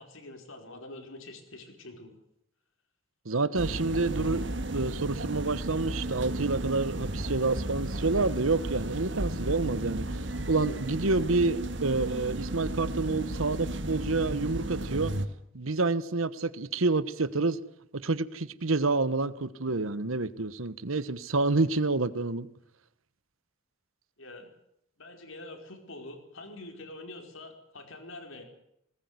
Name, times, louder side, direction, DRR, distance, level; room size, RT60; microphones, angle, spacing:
voice 1, 0.0-2.2 24.2-24.5 25.0-28.4, left 2 dB, 80° left, 4 dB, 4.8 m, -45 dB
voice 2, 3.2-4.4 4.7-10.0 10.5-15.1 15.5-17.6 17.9-22.5, right 3 dB, 85° right, 16 dB, 1.1 m, -28 dB
sound 1, 3.6-15.3, right 1 dB, 60° right, 1.7 m, -34 dB
20.0 x 19.0 x 9.6 m, 0.76 s
head